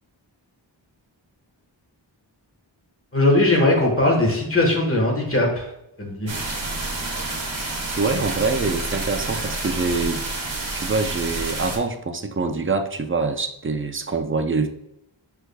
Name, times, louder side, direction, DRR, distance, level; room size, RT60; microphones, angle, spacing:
voice 1, 3.1-5.7 6.0-6.3, left 2 dB, 30° left, 0 dB, 1.3 m, -19 dB
sound 1, 6.3-11.8, right 2 dB, 75° right, 1.0 m, -29 dB
voice 2, 8.0-10.2 10.7-14.7, right 4 dB, 30° right, 7 dB, 0.4 m, -25 dB
6.0 x 3.4 x 2.2 m, 0.81 s
wide cardioid pair, 45°, 46 cm